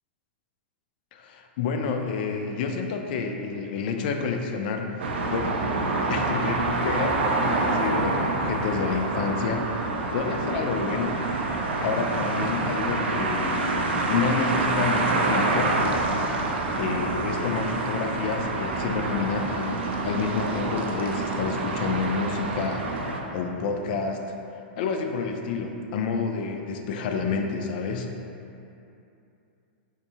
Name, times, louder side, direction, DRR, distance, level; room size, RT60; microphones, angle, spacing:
voice 1, 1.1-5.6 6.1-11.2 11.8-15.8 16.8-24.2 24.8-28.1, left 5 dB, 55° left, 4 dB, 0.3 m, -29 dB
sound 1, 5.0-23.2, right 2 dB, 80° right, 0.4 m, -27 dB
3.6 x 2.6 x 2.8 m, 2.7 s
hypercardioid pair, 125°, 6 cm